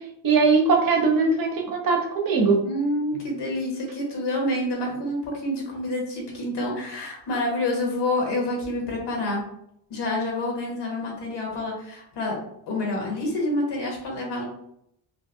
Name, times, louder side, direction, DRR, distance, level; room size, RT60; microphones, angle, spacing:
voice 1, 0.2-2.6, right 4 dB, 50° right, 1 dB, 0.8 m, -20 dB
voice 2, 2.6-9.4 9.9-12.4 12.7-14.4, left 1 dB, 70° left, -1 dB, 1.3 m, -28 dB
3.9 x 2.2 x 2.6 m, 0.75 s
cardioid pair, 115°, 43 cm